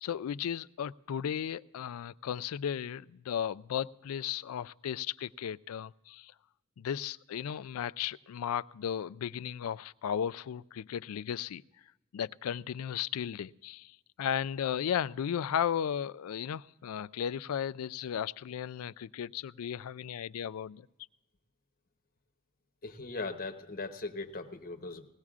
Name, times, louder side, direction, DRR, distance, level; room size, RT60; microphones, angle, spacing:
voice 1, 0.0-6.3 6.8-11.6 12.1-20.9, left 9 dB, 75° left, 17 dB, 0.3 m, -35 dB
voice 2, 22.8-25.1, left 3 dB, 40° left, 5 dB, 1.0 m, -39 dB
20.5 x 16.5 x 2.4 m, 0.98 s
head